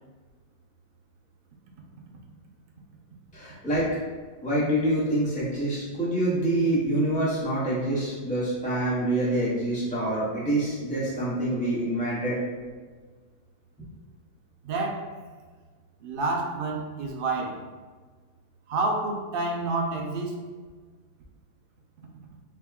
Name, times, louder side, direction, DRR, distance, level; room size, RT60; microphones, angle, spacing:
voice 1, 3.3-3.9 4.4-12.4, right 1 dB, 5° left, -9 dB, 0.8 m, -26 dB
voice 2, 14.6-15.1 16.0-17.6 18.7-20.4, right 2 dB, 75° right, 1 dB, 0.5 m, -28 dB
3.5 x 2.2 x 3.4 m, 1.5 s
omnidirectional pair, 1.5 m